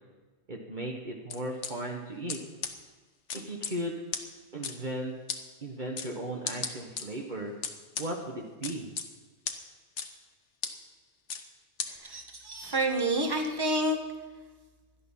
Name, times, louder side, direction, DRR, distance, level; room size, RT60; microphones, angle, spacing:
voice 1, 0.5-2.4 3.3-4.0 4.5-5.1 5.6-7.5 8.0-8.9, right 1 dB, 45° right, 0 dB, 1.5 m, -36 dB
sound 1, 1.3-1.7 2.3-2.4 2.6-2.7 3.3-3.7 4.1-4.2 4.6-4.7 5.3-5.4 6.0-6.1 6.5-7.0 7.6-8.1 8.6-9.1 9.5-9.6 10.0-10.1 10.6-10.7 11.3-11.4 11.8-11.9, left 6 dB, 85° left, 1.5 m, -33 dB
voice 2, 11.9-14.0, right 1 dB, 20° right, 2 dB, 1.7 m, -29 dB
17.5 x 11.0 x 5.6 m, 1.3 s
omnidirectional pair, 1.2 m